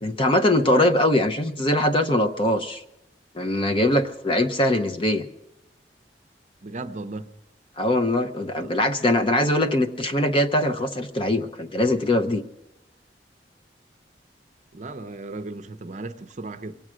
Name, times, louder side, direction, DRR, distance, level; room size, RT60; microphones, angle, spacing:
voice 1, 0.0-2.8 3.3-5.3 7.8-12.4, left 1 dB, 30° left, 0.7 m, -22 dB
voice 2, 6.6-7.3 8.6-8.7 14.7-16.8, right 2 dB, 45° right, 0.7 m, -36 dB
23.0 x 8.7 x 6.2 m
head